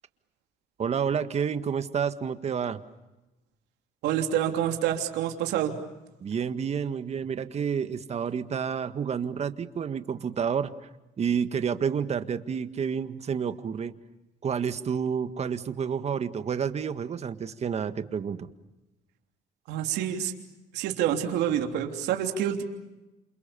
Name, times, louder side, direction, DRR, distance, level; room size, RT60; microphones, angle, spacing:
voice 1, 0.8-2.8 6.2-10.7 11.2-13.9 14.4-18.5, right 7 dB, 40° right, 10 dB, 1.8 m, -29 dB
voice 2, 4.0-5.8 19.7-20.3 20.7-22.6, right 10 dB, 85° right, 4 dB, 3.2 m, -27 dB
28.5 x 28.5 x 7.1 m, 1.0 s
cardioid pair, 110°, 17 cm